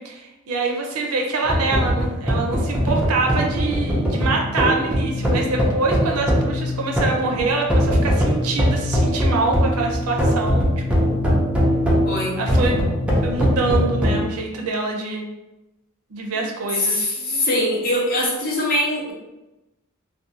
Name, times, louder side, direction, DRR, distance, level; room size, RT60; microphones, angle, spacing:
voice 1, 0.0-10.7 11.0-11.2 12.4-12.8 13.2-15.2 16.1-17.1, right 3 dB, 85° right, 1 dB, 0.5 m, -25 dB
sound 1, 1.4-14.2, equal, 5° right, 0.4 m, -21 dB
voice 2, 12.0-12.4 16.8-19.1, left 1 dB, 45° left, -3 dB, 0.7 m, -22 dB
2.4 x 2.2 x 2.7 m, 1.0 s
head